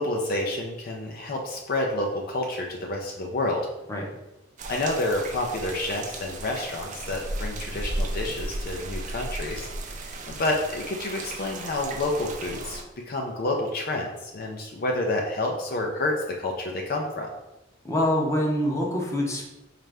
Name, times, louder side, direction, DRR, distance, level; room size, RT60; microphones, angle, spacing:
voice 1, 0.0-3.7 4.7-9.7 10.0-17.3, left 2 dB, 50° left, 0 dB, 0.4 m, -29 dB
sound 1, 4.6-12.8, right 2 dB, 40° right, 0.4 m, -35 dB
voice 2, 17.8-19.5, left 1 dB, 15° left, -2 dB, 0.7 m, -25 dB
4.2 x 2.5 x 3.3 m, 0.97 s
head